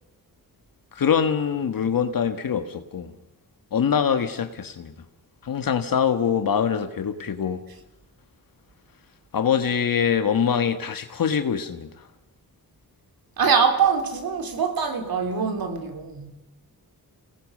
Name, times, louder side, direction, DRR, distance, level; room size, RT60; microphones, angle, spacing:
voice 1, 0.9-3.1 3.7-4.9 5.4-7.6 9.3-11.9, left 7 dB, 65° left, 1.6 m, -24 dB
voice 2, 13.4-16.3, right 6 dB, 75° right, 3.7 m, -23 dB
29.0 x 19.0 x 6.6 m
wide cardioid pair, 110°, 36 cm